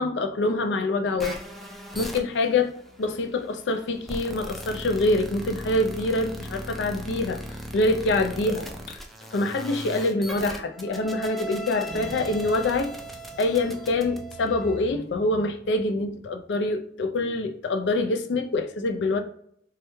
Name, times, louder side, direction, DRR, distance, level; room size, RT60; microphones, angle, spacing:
voice 1, 0.0-1.4 2.0-2.7 3.0-7.4 7.7-9.0 9.3-12.9 13.4-19.2, left 2 dB, 75° left, 0.4 m, -25 dB
sound 1, 1.2-14.8, right 1 dB, ahead, 0.3 m, -38 dB
sound 2, 11.9-16.4, equal, 20° right, 0.8 m, -44 dB
3.2 x 2.3 x 3.0 m
head